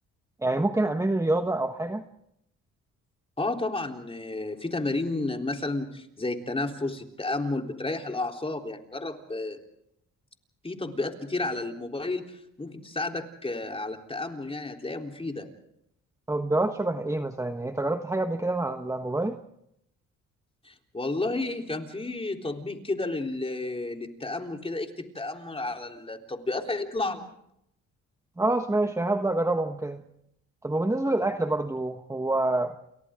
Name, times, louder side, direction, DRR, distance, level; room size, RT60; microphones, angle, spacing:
voice 1, 0.4-2.0 16.3-19.4 28.4-30.0 30.6-32.7, right 2 dB, 10° right, 6 dB, 1.4 m, -26 dB
voice 2, 3.4-9.6 10.6-12.2 12.6-15.5 20.6-27.2, left 2 dB, 20° left, 2 dB, 3.8 m, -31 dB
30.0 x 28.5 x 3.8 m, 0.77 s
cardioid pair, 90°, 30 cm